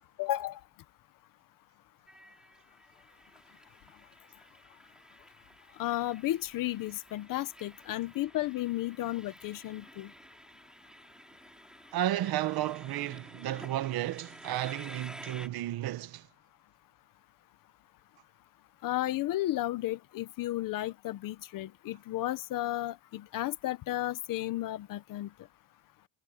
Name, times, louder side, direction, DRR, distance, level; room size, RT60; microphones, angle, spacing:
voice 1, 0.2-0.6 5.8-10.1 18.8-25.3, left 15 dB, 40° left, 0.8 m, -33 dB
Train, 2.1-15.5, equal, ahead, 5.7 m, -52 dB
voice 2, 11.9-16.3, right 13 dB, 45° right, 1.4 m, -33 dB
cardioid pair, 175°, 50 cm